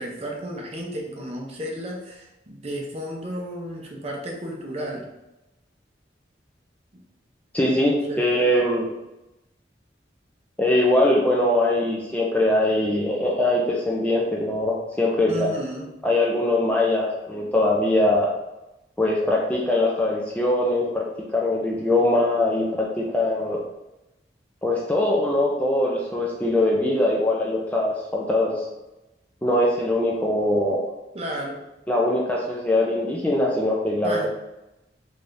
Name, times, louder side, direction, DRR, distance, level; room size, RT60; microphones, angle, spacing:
voice 1, 0.0-5.0 7.8-8.2 15.3-15.9 31.1-31.6 34.0-34.3, right 1 dB, 35° right, 0 dB, 0.6 m, -33 dB
voice 2, 7.5-8.9 10.6-15.5 16.0-18.3 19.0-21.0 21.3-23.6 24.6-28.7 29.4-30.8 31.9-34.3, left 1 dB, 10° left, -3 dB, 0.4 m, -22 dB
3.4 x 3.3 x 2.6 m, 0.96 s
head